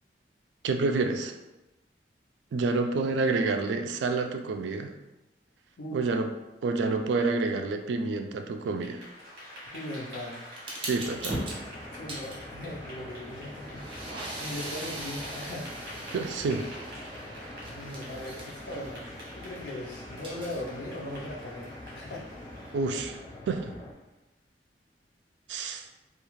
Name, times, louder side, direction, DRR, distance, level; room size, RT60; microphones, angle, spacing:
voice 1, 0.6-1.3 2.5-4.9 5.9-6.3 6.6-9.0 10.9-11.4 16.1-16.7 22.7-23.2 23.5-23.7 25.5-25.9, right 3 dB, 80° right, 5 dB, 0.3 m, -28 dB
voice 2, 5.8-6.1 9.7-10.4 11.9-15.7 17.7-19.1 19.3-22.4, left 1 dB, 70° left, -2 dB, 0.6 m, -39 dB
Clapping / Applause, 8.6-23.9, equal, 60° right, 0.9 m, -46 dB
sound 1, 10.6-19.6 20.0-22.7, right 1 dB, 30° right, 0.7 m, -41 dB
sound 2, 11.0-23.9, left 1 dB, 25° left, 0.3 m, -45 dB
2.4 x 2.4 x 3.0 m, 0.99 s
head